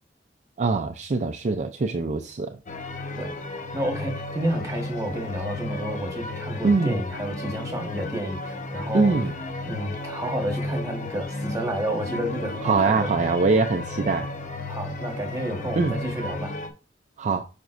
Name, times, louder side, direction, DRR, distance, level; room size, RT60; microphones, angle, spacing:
voice 1, 0.6-2.6 6.6-7.0 8.9-9.3 12.6-14.3 15.8-16.0 17.2-17.5, right 4 dB, 40° right, 0.4 m, -23 dB
sound 1, 2.7-16.7, left 2 dB, 45° left, 0.8 m, -33 dB
voice 2, 3.2-9.1 9.6-13.1 14.7-16.5, equal, 20° right, 1.4 m, -30 dB
9.2 x 5.1 x 2.5 m
head